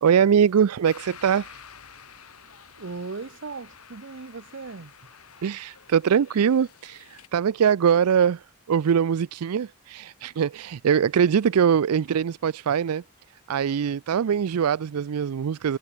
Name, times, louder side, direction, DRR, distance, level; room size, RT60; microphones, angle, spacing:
voice 1, 0.0-1.6 5.4-13.0 13.5-15.8, right 7 dB, 80° right, 0.4 m, -22 dB
sound 1, 0.8-7.3, left 7 dB, 85° left, 3.6 m, -49 dB
voice 2, 2.8-4.9, right 4 dB, 55° right, 0.8 m, -37 dB
head